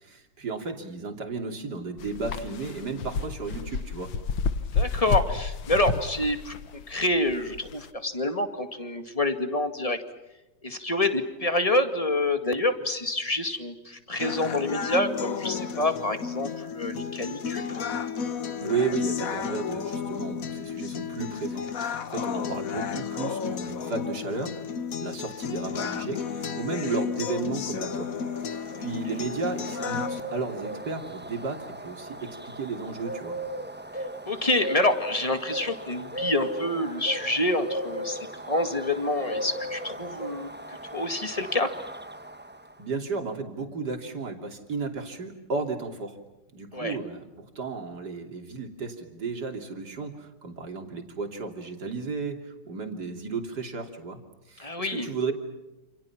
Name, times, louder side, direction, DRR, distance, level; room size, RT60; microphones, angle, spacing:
voice 1, 0.0-4.1 18.6-24.6 25.0-28.1 28.4-33.4 42.8-46.2 46.5-54.2 54.5-55.3, right 4 dB, 50° right, 4 dB, 3.5 m, -34 dB
sound 1, 2.0-7.9, left 5 dB, 80° left, 2.1 m, -30 dB
voice 2, 4.7-6.5 6.9-10.0 10.6-17.7 28.8-28.9 34.3-41.7 46.7-47.0 54.6-55.1, left 1 dB, 15° left, 7 dB, 2.1 m, -27 dB
sound 2, 14.2-30.2, left 6 dB, 50° left, 1.4 m, -32 dB
sound 3, 28.1-42.7, equal, 10° right, 0.4 m, -37 dB
29.0 x 28.5 x 5.9 m, 1.0 s
omnidirectional pair, 2.2 m